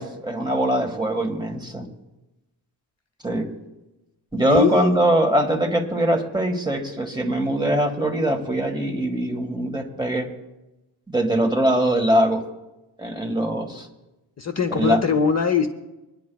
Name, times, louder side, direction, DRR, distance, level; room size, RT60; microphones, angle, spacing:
voice 1, 0.0-1.9 3.2-3.5 4.3-10.3 11.1-12.4 13.0-13.9 14.7-15.0, right 1 dB, 10° right, 2 dB, 1.6 m, -22 dB
voice 2, 4.4-4.9 14.4-15.7, left 6 dB, 35° left, 6 dB, 0.7 m, -21 dB
24.0 x 10.5 x 2.3 m, 1.0 s
wide cardioid pair, 120°, 44 cm